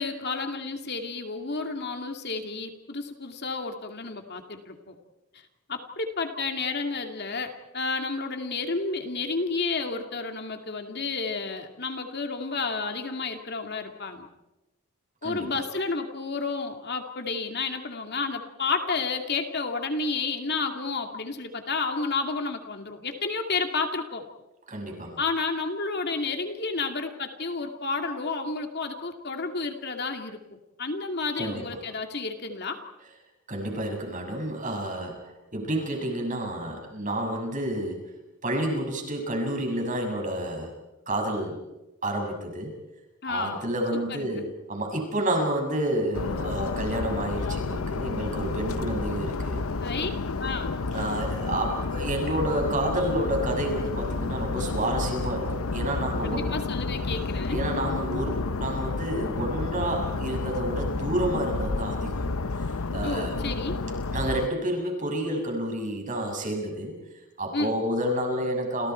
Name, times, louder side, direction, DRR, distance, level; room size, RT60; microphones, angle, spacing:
voice 1, 0.0-4.9 5.7-14.3 15.2-24.2 25.2-32.8 43.2-43.6 44.1-44.4 49.8-50.1 50.4-50.8 56.3-57.6 63.0-63.8 67.5-67.8, left 4 dB, 50° left, 5 dB, 2.5 m, -31 dB
voice 2, 24.7-25.2 31.4-31.6 33.5-35.2 35.5-38.0 38.4-40.7 41.1-41.6 42.0-42.7 43.3-49.6 50.5-56.6 57.5-62.3 62.9-63.4 64.1-67.0 67.4-68.9, right 1 dB, 35° right, 2 dB, 6.4 m, -29 dB
sound 1, 46.1-64.5, left 3 dB, 75° left, 0.8 m, -30 dB
30.0 x 28.5 x 4.6 m, 1.0 s
head